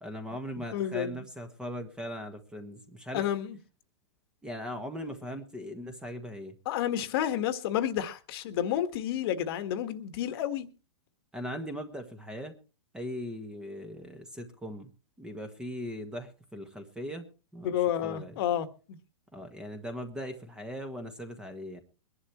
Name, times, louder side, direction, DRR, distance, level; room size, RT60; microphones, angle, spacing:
voice 1, 0.0-3.2 4.4-6.5 11.3-12.5 12.9-14.9 15.2-17.2 17.5-18.4 19.3-21.8, equal, 5° right, 1.5 m, -39 dB
voice 2, 0.7-1.2 3.1-3.6 6.6-10.7 17.6-18.7, left 10 dB, 45° left, 1.5 m, -30 dB
23.0 x 11.0 x 3.1 m
hypercardioid pair, 150°, 18 cm